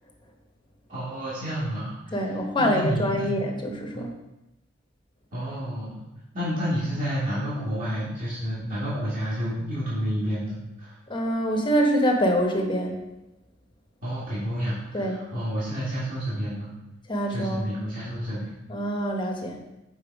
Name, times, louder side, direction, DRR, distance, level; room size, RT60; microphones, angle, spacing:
voice 1, 0.9-2.2 2.6-3.4 3.9-4.1 5.3-6.0 6.3-10.9 14.0-16.7 17.3-18.5, equal, 45° right, -10 dB, 2.2 m, -30 dB
voice 2, 2.1-4.1 11.1-13.0 14.9-15.2 17.1-17.7 18.7-19.5, equal, 25° left, 2 dB, 1.0 m, -25 dB
7.0 x 4.3 x 4.8 m, 0.96 s
head